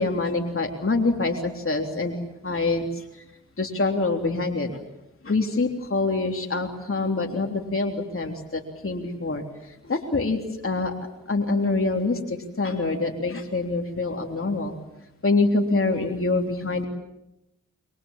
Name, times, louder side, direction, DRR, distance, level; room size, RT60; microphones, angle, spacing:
voice 1, 0.0-2.2 2.4-3.2 3.6-4.8 5.2-10.9 11.3-14.7 15.2-16.9, left 3 dB, 45° left, 2 dB, 3.4 m, -25 dB
27.5 x 24.0 x 7.4 m, 0.88 s
cardioid pair, 45°, 31 cm